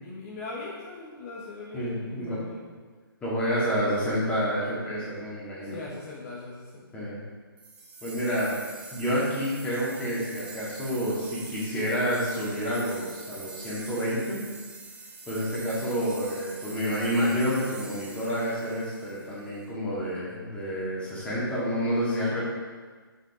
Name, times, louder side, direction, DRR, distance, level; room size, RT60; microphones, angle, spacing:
voice 1, 0.0-2.6 5.6-6.9, left 3 dB, 35° left, -4 dB, 1.2 m, -40 dB
voice 2, 1.7-2.4 3.2-5.8 6.9-7.2 8.0-8.5 8.9-14.4 15.3-22.4, equal, 10° left, -8 dB, 2.1 m, -29 dB
sound 1, 7.6-19.6, right 3 dB, 10° right, 0.7 m, -45 dB
6.7 x 5.1 x 4.9 m, 1.4 s
hypercardioid pair, 155°, 12 cm